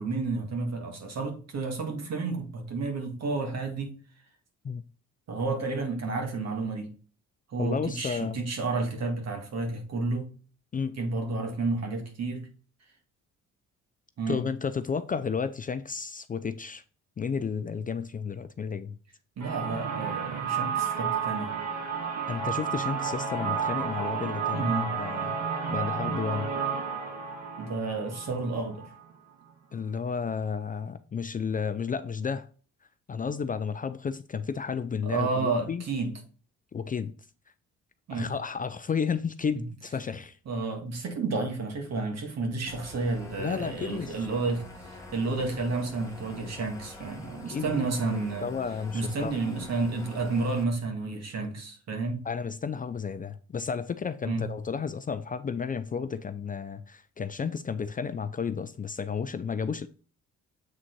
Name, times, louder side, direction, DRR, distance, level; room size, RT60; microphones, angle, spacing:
voice 1, 0.0-4.0 5.3-6.9 7.5-10.3 11.0-12.5 14.2-14.4 19.4-21.6 24.5-24.9 27.6-28.9 35.0-36.1 38.1-38.3 39.6-39.7 40.5-48.5 48.9-52.2 54.2-54.5, right 3 dB, 60° right, 2.0 m, -31 dB
voice 2, 7.6-8.4 10.7-11.0 14.3-16.8 17.2-19.0 22.3-25.4 25.7-26.5 29.7-32.5 33.1-35.8 36.7-37.1 38.1-40.4 43.4-44.3 47.5-49.4 52.2-59.9, left 6 dB, 30° left, 0.4 m, -32 dB
sound 1, 19.4-29.1, right 6 dB, 75° right, 1.8 m, -31 dB
sound 2, 42.7-50.6, left 2 dB, 10° left, 1.6 m, -45 dB
7.6 x 3.7 x 4.5 m
cardioid pair, 90°, 30 cm